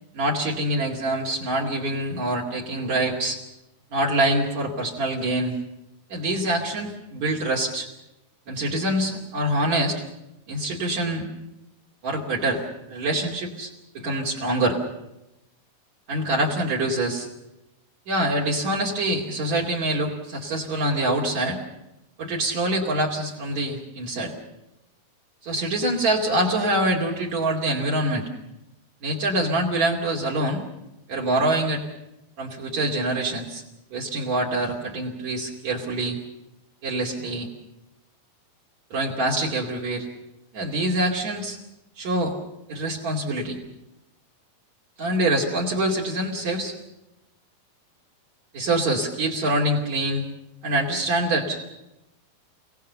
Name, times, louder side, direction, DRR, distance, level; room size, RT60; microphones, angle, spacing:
voice 1, 0.1-3.4 3.9-5.6 6.1-7.9 8.5-10.0 10.5-11.3 12.0-12.6 12.9-14.8 16.1-17.3 18.1-21.6 22.2-24.3 25.4-28.3 29.0-30.6 31.1-31.8 32.4-33.6 33.9-36.2 36.8-37.5 38.9-40.1 40.5-41.6 42.0-42.3 42.7-43.6 45.0-46.7 48.5-50.2 50.6-51.6, right 1 dB, 50° right, 3 dB, 3.7 m, -25 dB
29.0 x 18.5 x 7.0 m, 0.91 s
omnidirectional pair, 4.3 m